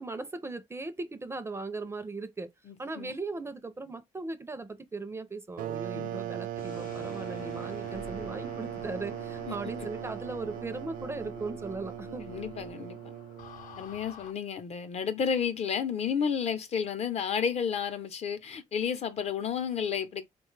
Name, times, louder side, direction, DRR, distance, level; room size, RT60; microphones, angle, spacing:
voice 1, 0.0-2.5 2.8-12.3, right 3 dB, 20° right, 0.5 m, -38 dB
voice 2, 2.7-3.1 5.9-6.3 9.5-9.9 12.3-13.0 13.8-20.2, left 7 dB, 50° left, 0.7 m, -32 dB
sound 1, 5.6-14.0, right 12 dB, 85° right, 0.4 m, -39 dB
sound 2, 6.6-14.3, left 8 dB, 85° left, 0.6 m, -47 dB
4.2 x 2.3 x 3.1 m
cardioid pair, 130°, 14 cm